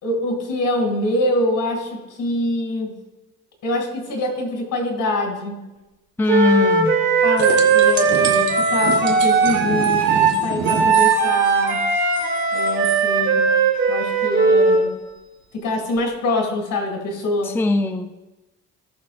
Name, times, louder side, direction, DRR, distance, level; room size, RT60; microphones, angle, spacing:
voice 1, 0.0-2.9 3.6-5.7 7.2-11.9 12.5-13.5 13.9-14.9 15.5-17.6, left 1 dB, 70° left, 2 dB, 2.5 m, -25 dB
voice 2, 6.2-7.0 17.4-18.2, left 2 dB, 5° left, 8 dB, 0.4 m, -20 dB
Wind instrument woodwind instrument, 6.3-14.8, right 4 dB, 80° right, 3.0 m, -18 dB
sound 1, 7.4-13.0 16.0-16.1, right 5 dB, 65° right, 1.5 m, -30 dB
17.5 x 6.0 x 2.5 m, 1.1 s
cardioid pair, 100°, 32 cm